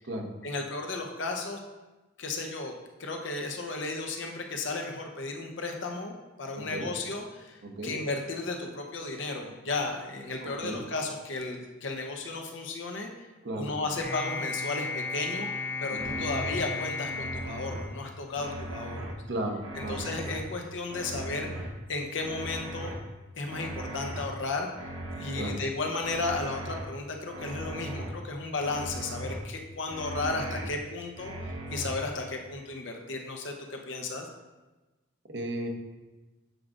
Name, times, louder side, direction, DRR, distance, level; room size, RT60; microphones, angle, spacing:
voice 1, 0.4-1.6 2.2-2.7 3.0-6.1 6.4-13.1 13.6-15.5 15.8-19.1 19.8-21.5 21.9-22.9 23.4-24.7 25.1-34.3, left 3 dB, 65° left, 2 dB, 0.8 m, -34 dB
voice 2, 6.5-6.9 7.6-8.0 10.4-10.8 13.4-13.7 15.9-16.2 19.3-20.0 25.3-25.5 35.2-35.7, right 1 dB, 60° right, 2 dB, 0.9 m, -35 dB
sound 1, 14.0-18.5, left 3 dB, 10° left, 0.3 m, -35 dB
sound 2, 16.0-16.6 17.0-17.8 18.3-19.1 19.6-20.4 20.9-21.7 22.2-22.9 23.4-24.2 24.7-25.5 26.0-26.8 27.3-28.1 28.6-29.4 29.9-30.7 31.1-31.9, right 1 dB, 90° right, 1.0 m, -38 dB
7.7 x 4.8 x 2.5 m, 1.2 s
head